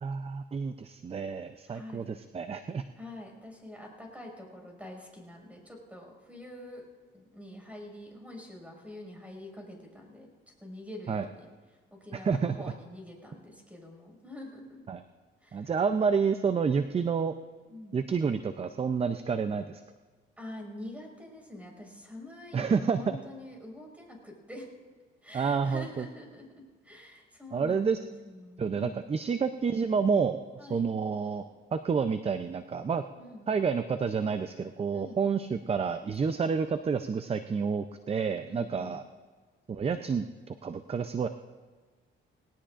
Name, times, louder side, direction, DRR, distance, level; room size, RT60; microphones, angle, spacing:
voice 1, 0.0-2.8 11.1-11.3 12.1-12.7 14.9-15.0 15.5-17.3 17.9-19.8 22.5-23.2 25.3-26.1 27.5-28.0 28.6-31.4 31.7-33.0 33.5-39.0 39.7-41.3, right 5 dB, 30° right, 9 dB, 0.6 m, -29 dB
voice 2, 1.7-2.1 3.0-6.8 7.1-10.3 10.6-11.5 11.9-14.9 15.4-15.7 17.7-18.0 20.4-24.7 25.2-26.5 26.8-29.0 30.6-30.9 33.2-33.4 34.9-35.2 38.5-38.9, left 1 dB, 5° right, 1 dB, 5.7 m, -46 dB
20.0 x 19.0 x 2.6 m, 1.4 s
cardioid pair, 90°, 20 cm